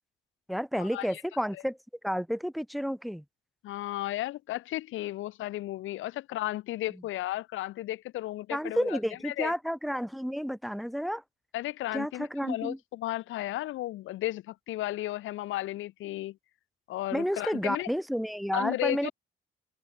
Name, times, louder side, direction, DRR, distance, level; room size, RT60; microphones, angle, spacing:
voice 1, 0.5-1.8 2.0-3.2 6.9-7.0 8.5-11.2 11.9-12.8 17.1-19.1, equal, ahead, 1.2 m, -31 dB
voice 2, 3.6-9.0 9.2-9.5 11.5-16.4 16.9-17.9 18.5-19.1, left 15 dB, 85° left, 1.0 m, -34 dB
open air
cardioid pair, 90°, 20 cm